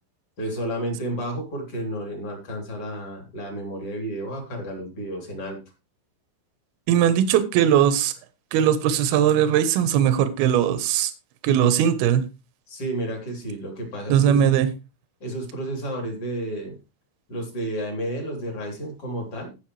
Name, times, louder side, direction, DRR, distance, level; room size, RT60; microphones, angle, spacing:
voice 1, 0.4-5.6 12.7-14.4 15.2-16.8 17.3-19.5, right 1 dB, 30° left, 1 dB, 3.8 m, -31 dB
voice 2, 6.9-8.1 8.5-11.1 11.4-12.2 14.1-14.7, right 9 dB, 70° right, 10 dB, 2.5 m, -19 dB
17.0 x 6.6 x 3.3 m, 0.28 s
omnidirectional pair, 5.7 m